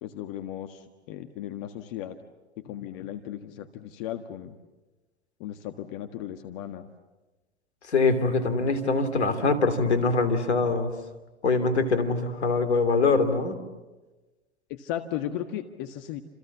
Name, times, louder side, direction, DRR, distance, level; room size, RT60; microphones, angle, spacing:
voice 1, 0.0-2.2 2.6-4.5 5.4-6.9 14.7-16.2, left 11 dB, 55° left, 7 dB, 1.7 m, -36 dB
voice 2, 7.9-10.9 11.4-13.6, left 3 dB, 85° left, 10 dB, 3.1 m, -23 dB
29.5 x 28.0 x 7.3 m, 1.2 s
hypercardioid pair, 85°, 33 cm